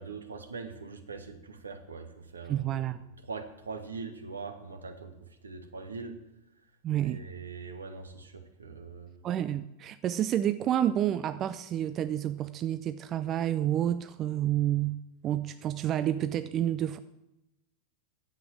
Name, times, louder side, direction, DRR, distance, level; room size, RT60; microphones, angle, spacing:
voice 1, 0.0-2.9 3.2-6.2 7.0-9.1, right 4 dB, 75° right, 8 dB, 1.3 m, -42 dB
voice 2, 2.5-3.0 6.8-7.2 9.2-15.0 15.2-17.0, right 11 dB, 30° right, 13 dB, 0.4 m, -29 dB
10.0 x 7.9 x 7.4 m, 0.92 s
figure-of-eight pair, 90°, 0 cm